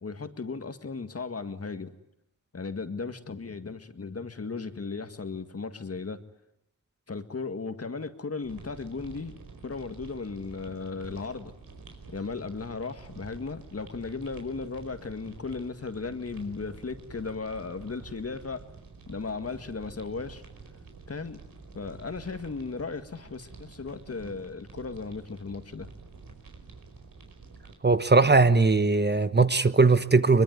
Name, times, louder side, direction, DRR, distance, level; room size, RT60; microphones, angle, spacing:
voice 1, 0.0-1.9 2.5-6.2 7.1-9.3 9.6-11.5 12.1-18.6 19.1-20.4 21.1-21.4 21.7-25.9, left 4 dB, 45° left, 1.9 m, -36 dB
sound 1, 8.4-27.8, right 4 dB, 80° right, 4.8 m, -48 dB
voice 2, 27.8-30.4, right 3 dB, 30° right, 1.1 m, -20 dB
23.0 x 22.5 x 9.5 m
wide cardioid pair, 85°, 33 cm